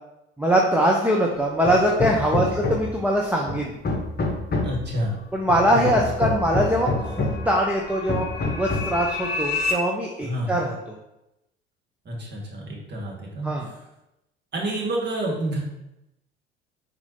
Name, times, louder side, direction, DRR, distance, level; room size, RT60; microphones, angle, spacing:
voice 1, 0.4-3.7 5.3-10.7 13.4-13.7, right 1 dB, 5° right, -2 dB, 0.6 m, -22 dB
Hammer, 1.6-3.0 3.5-4.9 5.5-7.5 8.1-9.0, left 3 dB, 30° left, 0.9 m, -27 dB
voice 2, 4.6-5.2 5.7-5.8 10.2-10.5 12.0-13.8 14.5-15.6, right 1 dB, 35° right, -3 dB, 1.6 m, -29 dB
sound 1, 5.4-9.7, left 3 dB, 70° left, 0.7 m, -32 dB
4.2 x 2.6 x 4.3 m, 0.88 s
figure-of-eight pair, 55°, 30 cm